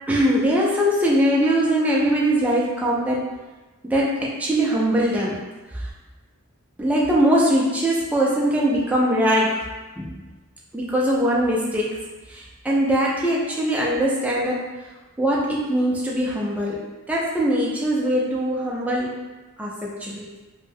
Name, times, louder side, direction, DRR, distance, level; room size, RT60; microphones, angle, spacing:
voice 1, 0.1-3.3 3.8-5.4 5.7-5.9 6.8-9.6 10.0-10.2 10.7-11.9 12.3-14.7 15.2-16.8 17.1-19.2 19.6-20.3, equal, 5° right, -5 dB, 0.3 m, -21 dB
2.5 x 2.1 x 3.4 m, 1.2 s
head